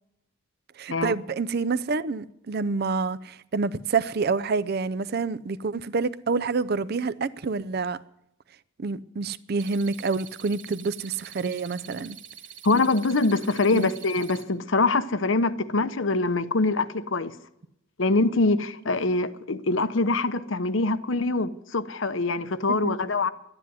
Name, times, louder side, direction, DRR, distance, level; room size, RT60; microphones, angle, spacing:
voice 1, 0.8-8.0 8.8-12.2 13.7-13.9 22.7-23.0, right 4 dB, 50° right, 0.5 m, -28 dB
sound 1, 9.6-14.4, right 9 dB, 70° right, 1.8 m, -45 dB
voice 2, 12.6-17.3 18.0-23.3, left 3 dB, 75° left, 0.9 m, -24 dB
12.5 x 9.9 x 9.5 m
head